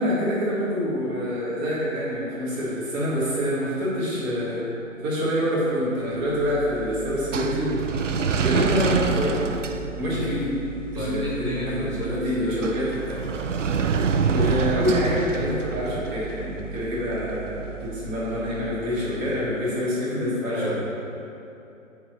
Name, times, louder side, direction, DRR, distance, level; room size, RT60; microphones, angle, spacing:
voice 1, 0.0-4.7 5.0-9.6 10.0-10.5 10.9-13.2 14.3-20.7, equal, 15° right, -9 dB, 1.6 m, -26 dB
sound 1, 6.2-19.3, right 6 dB, 65° right, 0.5 m, -28 dB
voice 2, 10.0-10.4 10.9-12.6 20.5-20.7, left 1 dB, 25° left, -8 dB, 0.7 m, -32 dB
5.8 x 4.7 x 6.6 m, 2.8 s
figure-of-eight pair, 140°, 40 cm